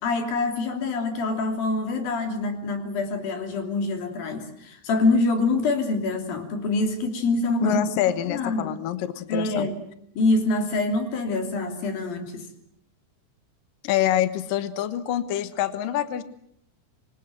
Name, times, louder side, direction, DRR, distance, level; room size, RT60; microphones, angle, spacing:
voice 1, 0.0-7.8 8.3-8.8 9.3-9.8 10.2-12.5, left 3 dB, 50° left, 6 dB, 4.4 m, -25 dB
voice 2, 7.6-9.7 13.8-16.2, left 12 dB, 85° left, 12 dB, 1.9 m, -26 dB
26.5 x 24.0 x 7.7 m, 0.69 s
omnidirectional pair, 5.9 m